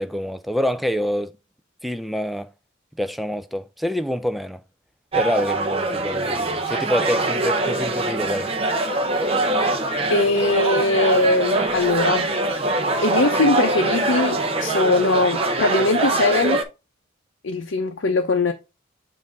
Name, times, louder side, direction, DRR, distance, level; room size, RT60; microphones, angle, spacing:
voice 1, 0.0-1.3 1.8-2.5 3.0-4.6 5.1-8.5, equal, ahead, 0.3 m, -26 dB
sound 1, 5.1-16.6, right 2 dB, 30° right, 0.7 m, -23 dB
voice 2, 10.1-12.3 13.0-16.6 17.4-18.5, left 3 dB, 65° left, 0.6 m, -21 dB
7.4 x 2.6 x 5.1 m
head